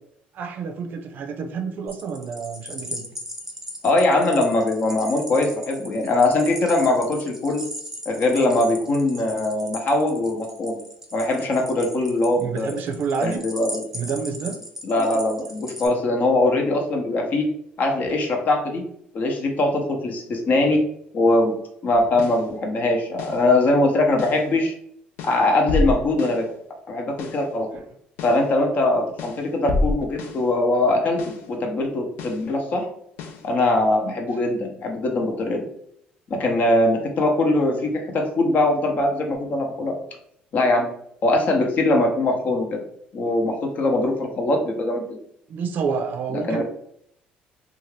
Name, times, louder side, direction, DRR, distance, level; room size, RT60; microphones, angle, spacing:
voice 1, 0.3-3.0 12.4-13.4 13.9-14.6 45.5-46.6, right 5 dB, 60° right, 5 dB, 0.5 m, -28 dB
sound 1, 1.9-15.9, equal, 10° right, 0.6 m, -38 dB
voice 2, 3.8-7.6 8.1-10.8 11.1-12.7 13.2-13.8 14.8-17.5 17.8-18.8 19.1-20.8 21.1-21.5 21.8-24.7 25.2-26.5 26.9-27.7 28.2-32.8 33.4-35.7 36.3-39.9 40.5-40.9 41.2-42.8 43.1-45.2 46.3-46.6, left 2 dB, 50° left, 2 dB, 0.8 m, -21 dB
sound 2, 22.2-22.5 23.2-23.5 24.2-24.5 25.2-26.5 27.2-27.5 28.2-28.5 29.2-30.5 31.2-31.5 32.2-32.5 33.2-33.5, left 2 dB, 80° left, 0.4 m, -28 dB
2.6 x 2.4 x 3.2 m, 0.70 s
cardioid pair, 95°, 4 cm